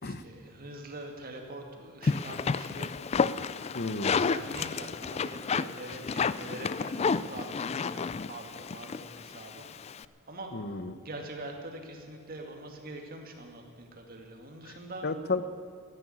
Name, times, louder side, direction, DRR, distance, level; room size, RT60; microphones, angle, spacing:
voice 1, 0.0-2.9 3.8-9.7 10.3-10.5 11.0-15.1, right 2 dB, 45° right, 3 dB, 2.2 m, -44 dB
sound 1, 2.0-10.0, left 5 dB, 30° left, 0.3 m, -31 dB
voice 2, 3.7-4.2 10.5-10.9 15.0-15.4, left 3 dB, 50° left, 13 dB, 0.8 m, -32 dB
14.5 x 9.8 x 9.9 m, 2.3 s
head